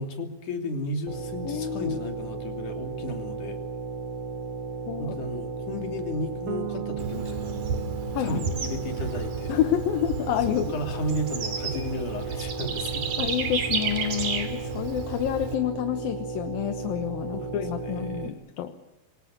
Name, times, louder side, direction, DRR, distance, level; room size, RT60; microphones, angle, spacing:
voice 1, 0.0-3.6 5.0-7.7 8.2-9.5 10.6-13.2 17.3-18.4, left 1 dB, 60° left, 5 dB, 4.4 m, -34 dB
sound 1, 1.1-18.3, right 4 dB, 45° right, 1.5 m, -35 dB
voice 2, 1.4-2.0 4.9-5.2 8.1-8.4 9.5-10.7 13.2-18.8, left 11 dB, 75° left, 8 dB, 3.0 m, -28 dB
Bass guitar, 6.5-10.3, right 14 dB, 85° right, 3.2 m, -39 dB
Bird / Insect, 7.0-15.5, right 5 dB, 60° right, 4.3 m, -32 dB
27.0 x 24.0 x 6.9 m, 0.95 s
omnidirectional pair, 4.2 m